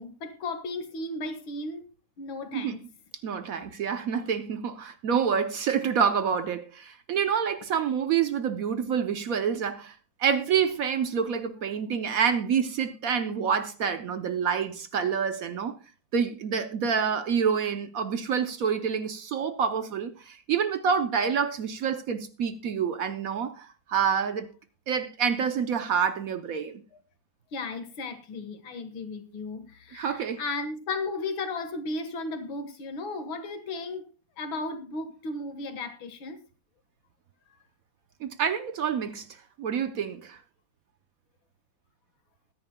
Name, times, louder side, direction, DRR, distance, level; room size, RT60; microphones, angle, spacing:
voice 1, 0.0-1.8 2.2-2.8 27.5-34.0 34.4-36.4, left 3 dB, 75° left, 2.3 m, -35 dB
voice 2, 3.2-15.8 16.1-24.5 24.9-26.8 29.9-30.4 38.2-39.3 39.6-40.4, right 7 dB, 65° right, 0.9 m, -27 dB
21.5 x 10.0 x 2.2 m
omnidirectional pair, 2.2 m